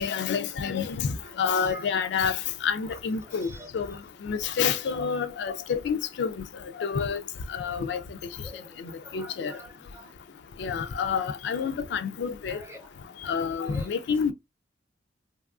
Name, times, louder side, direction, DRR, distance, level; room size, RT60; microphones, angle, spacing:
voice 1, 0.0-1.1 1.4-3.5 3.7-4.0 4.2-6.5 6.8-7.2 7.5-8.0 8.8-9.5 10.6-12.6 13.2-14.3, left 6 dB, 65° left, 0.3 m, -28 dB
voice 2, 2.8-3.7 8.4-10.2 12.5-13.2 13.6-13.9, equal, 15° right, 0.6 m, -47 dB
2.9 x 2.3 x 2.3 m
head